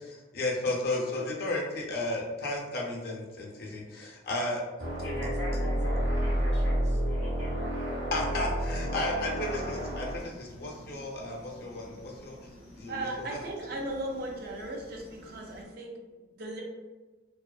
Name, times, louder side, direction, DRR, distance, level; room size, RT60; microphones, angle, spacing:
voice 1, 0.1-4.6 8.1-12.4 12.7-13.4, left 2 dB, 55° left, -1 dB, 0.5 m, -33 dB
sound 1, 4.8-10.2, equal, 80° right, 0.8 m, -30 dB
voice 2, 5.0-7.9, left 1 dB, 10° left, -13 dB, 0.8 m, -41 dB
sound 2, 9.5-15.6, equal, 10° right, 1.2 m, -51 dB
voice 3, 12.9-16.6, right 1 dB, 55° right, 0 dB, 0.4 m, -37 dB
2.4 x 2.3 x 2.3 m, 1.2 s
head